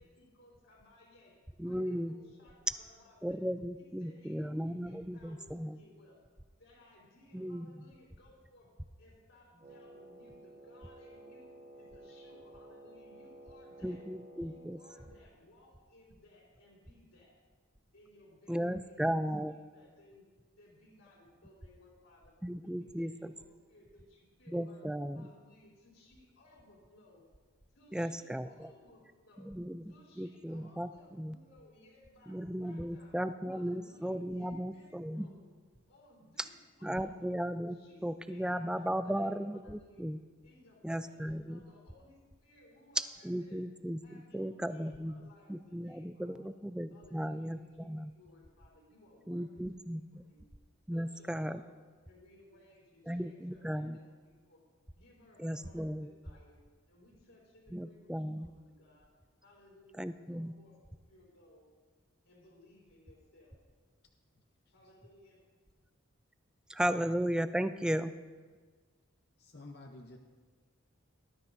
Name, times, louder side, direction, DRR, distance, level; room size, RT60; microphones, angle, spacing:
voice 1, 0.0-1.3 1.6-3.4 3.7-6.2 6.6-8.7 9.0-14.0 14.3-17.3 17.9-20.3 20.6-22.3 22.6-24.9 25.1-27.2 27.7-29.5 29.9-33.1 33.5-35.5 35.9-37.3 37.7-40.1 40.4-43.6 44.0-46.5 46.9-50.4 50.9-51.7 52.0-54.6 54.9-56.6 56.9-59.1 59.4-61.7 62.2-63.6 64.7-65.4, left 1 dB, 80° left, -6 dB, 3.5 m, -61 dB
voice 2, 1.6-2.1 3.2-5.8 7.3-7.7 13.8-14.8 18.5-19.5 22.4-23.3 24.5-25.3 27.9-28.7 29.4-30.9 31.2-31.4 32.3-35.3 36.4-36.5 36.8-37.8 38.0-40.2 40.8-41.6 43.0-48.1 49.3-50.2 50.9-51.6 53.1-54.0 55.4-56.1 57.7-58.5 60.0-60.5 66.7-68.1, equal, 5° right, 11 dB, 0.3 m, -36 dB
Wind instrument woodwind instrument, 9.6-15.3, right 2 dB, 35° right, 1.2 m, -54 dB
voice 3, 69.4-70.2, left 2 dB, 50° left, 2 dB, 0.8 m, -50 dB
19.0 x 12.5 x 2.6 m, 1.5 s
head